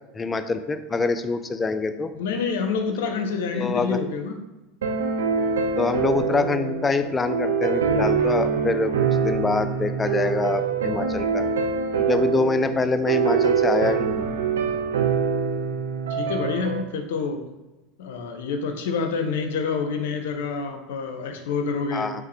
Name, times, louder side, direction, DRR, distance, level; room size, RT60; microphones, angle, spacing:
voice 1, 0.1-2.1 3.5-4.0 5.8-11.4 12.1-14.3 21.9-22.2, left 4 dB, 20° left, 9 dB, 0.3 m, -25 dB
voice 2, 2.1-4.4 16.1-17.4 18.0-22.2, left 5 dB, 70° left, 5 dB, 0.5 m, -27 dB
sound 1, 4.8-16.8, right 6 dB, 80° right, 0.3 m, -24 dB
3.7 x 3.1 x 3.1 m, 1.1 s
hypercardioid pair, 80°, 0 cm